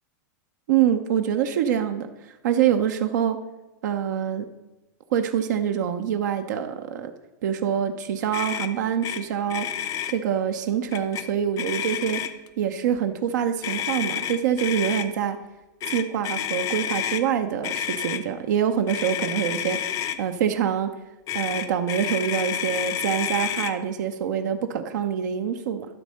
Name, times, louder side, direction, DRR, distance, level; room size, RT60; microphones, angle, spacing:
voice 1, 0.7-3.4 3.8-4.5 5.1-7.1 7.4-9.7 10.1-12.2 12.6-15.4 15.9-20.9 21.3-25.9, right 9 dB, 75° right, 6 dB, 0.7 m, -25 dB
Motor vehicle (road), 8.3-8.7 9.0-9.2 9.5-10.1 10.9-11.2 11.6-12.5 13.6-15.1 15.8-17.2 17.6-18.2 18.9-20.2 21.3-23.7, left 10 dB, 35° left, 0.6 m, -29 dB
12.0 x 4.3 x 6.3 m, 1.0 s
hypercardioid pair, 125°, 10 cm